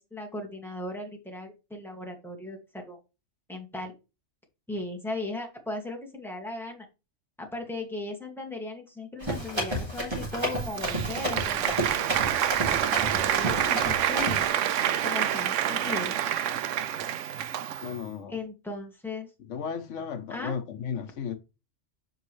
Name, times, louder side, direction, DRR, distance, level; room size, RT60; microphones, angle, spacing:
voice 1, 0.0-3.0 3.5-3.9 4.7-6.9 7.4-11.7 12.9-14.5 15.0-16.1 18.3-19.3 20.3-20.5, left 2 dB, ahead, 1.9 m, -37 dB
Run, 9.2-14.5, right 1 dB, 20° right, 3.0 m, -32 dB
Applause, 10.4-18.0, right 10 dB, 85° right, 1.0 m, -27 dB
voice 2, 17.8-18.4 19.5-21.4, left 7 dB, 80° left, 1.1 m, -34 dB
7.8 x 5.5 x 3.2 m
omnidirectional pair, 1.2 m